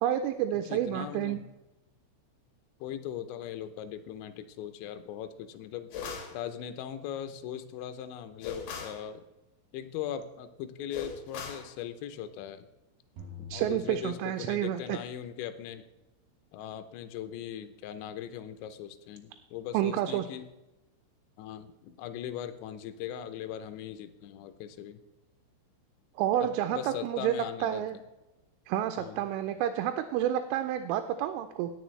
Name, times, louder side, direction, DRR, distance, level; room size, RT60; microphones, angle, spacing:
voice 1, 0.0-1.4 13.5-15.0 19.7-20.3 26.2-28.0 28.7-31.7, right 11 dB, 85° right, 8 dB, 3.1 m, -29 dB
voice 2, 0.7-1.4 2.8-5.9 6.3-9.2 9.7-12.7 13.5-15.8 16.5-20.5 21.4-25.0 26.4-28.0 29.0-29.2, left 10 dB, 80° left, 9 dB, 2.7 m, -40 dB
sound 1, 5.9-6.4 8.4-9.0 10.9-11.7, left 6 dB, 65° left, 2.9 m, -39 dB
sound 2, 13.2-15.0, left 4 dB, 55° right, 3.3 m, -46 dB
18.0 x 6.8 x 3.2 m, 0.99 s
omnidirectional pair, 5.8 m